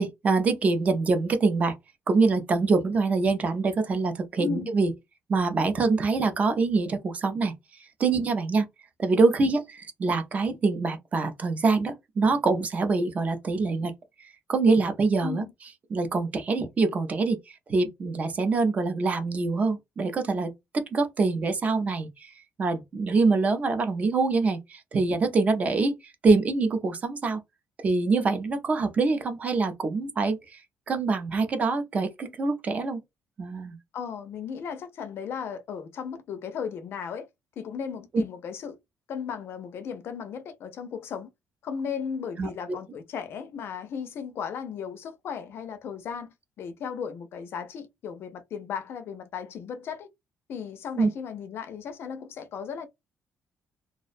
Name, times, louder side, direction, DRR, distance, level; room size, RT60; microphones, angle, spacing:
voice 1, 0.0-1.7 2.1-4.9 5.3-7.5 8.0-8.7 9.0-13.9 14.5-15.4 15.9-22.3 22.6-26.0 26.2-27.4 27.8-30.6 30.9-33.0 33.4-33.8 42.4-42.5 51.0-51.1, right 3 dB, 30° right, 0.4 m, -25 dB
voice 2, 4.4-4.7 15.2-15.5 33.9-37.3 37.6-38.8 39.1-41.3 41.6-50.1 50.5-52.9, left 7 dB, 50° left, 0.4 m, -36 dB
2.4 x 2.0 x 2.5 m
cardioid pair, 170°, 5 cm